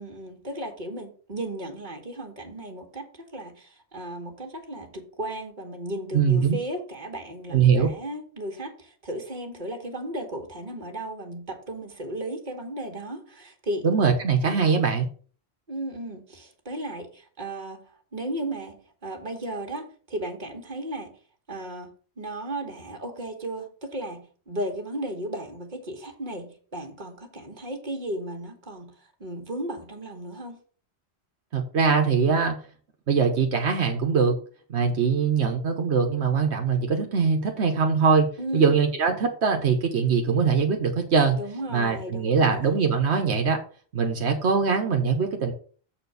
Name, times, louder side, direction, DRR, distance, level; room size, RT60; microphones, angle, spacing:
voice 1, 0.0-13.9 14.4-14.7 15.7-21.1 21.5-28.9 29.2-30.6 38.4-38.7 41.4-42.7, right 1 dB, 45° right, 1.8 m, -35 dB
voice 2, 6.1-6.6 7.5-7.9 13.8-15.1 31.5-32.5 33.1-34.4 34.7-38.3 38.5-41.4 41.7-43.6 43.9-45.5, right 5 dB, 80° right, 1.3 m, -22 dB
7.4 x 4.4 x 6.8 m
omnidirectional pair, 1.1 m